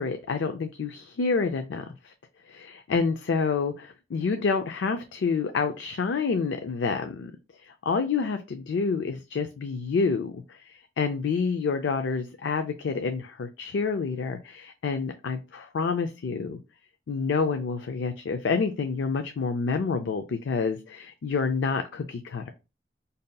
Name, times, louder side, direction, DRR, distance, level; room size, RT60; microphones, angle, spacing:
voice 1, 0.0-2.1 2.5-7.3 7.6-16.6 17.1-22.5, left 5 dB, 75° left, 7 dB, 0.4 m, -28 dB
5.2 x 2.7 x 2.2 m, 0.28 s
head